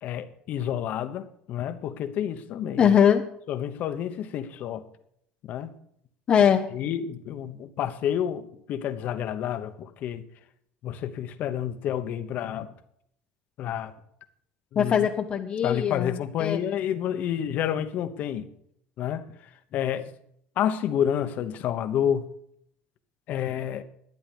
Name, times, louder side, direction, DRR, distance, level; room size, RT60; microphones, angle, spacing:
voice 1, 0.0-2.9 3.5-4.8 5.5-5.7 6.7-10.2 10.8-12.7 13.6-13.9 14.7-14.9 15.6-18.5 19.0-19.2 19.7-20.1 20.6-22.3 23.3-23.8, left 10 dB, 45° left, 1.1 m, -29 dB
voice 2, 2.8-3.2 6.3-6.6 14.8-16.6, left 8 dB, 30° left, 0.7 m, -21 dB
12.0 x 9.9 x 5.3 m
cardioid pair, 160°, 4 cm